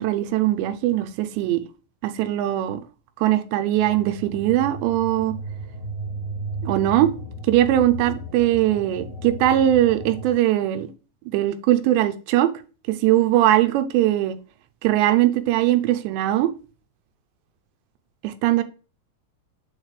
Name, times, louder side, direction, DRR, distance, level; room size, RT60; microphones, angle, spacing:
voice 1, 0.0-1.6 2.0-2.8 3.2-5.3 6.6-7.1 7.5-10.9 11.3-12.5 13.0-14.4 14.8-16.5 18.2-18.6, right 13 dB, 80° right, 2.8 m, -20 dB
sound 1, 3.8-10.3, right 1 dB, 85° left, 1.1 m, -34 dB
8.1 x 4.0 x 4.9 m
omnidirectional pair, 5.2 m